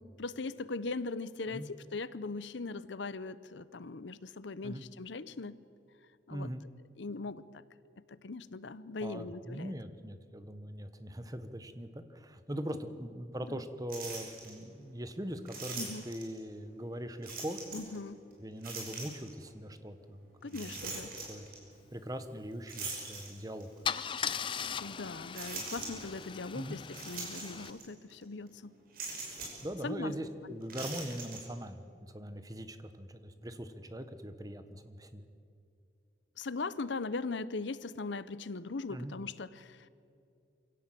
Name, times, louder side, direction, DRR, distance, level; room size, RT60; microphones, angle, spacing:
voice 1, 0.0-5.6 6.3-6.5 7.0-7.5 8.1-9.7 13.5-13.6 15.8-16.0 17.7-18.2 20.4-21.1 24.8-28.8 29.8-30.2 36.4-39.9, left 3 dB, 75° left, 16 dB, 0.8 m, -40 dB
voice 2, 6.3-6.6 9.0-17.6 18.4-20.9 21.3-21.5 21.9-23.7 26.5-26.8 29.6-35.2 38.9-39.1, equal, 20° right, 9 dB, 1.2 m, -41 dB
sound 1, 13.9-14.5 15.5-16.4 17.2-18.0 18.6-19.3 20.5-21.6 22.7-23.7 24.3-24.4 25.3-26.2 26.9-27.8 28.1-28.2 28.9-29.7 30.6-31.4, right 3 dB, 50° right, 5.9 m, -42 dB
Car / Engine starting / Idling, 23.1-23.3 23.8-27.7, left 7 dB, 25° left, 0.5 m, -38 dB
24.0 x 17.0 x 7.6 m, 2.6 s
head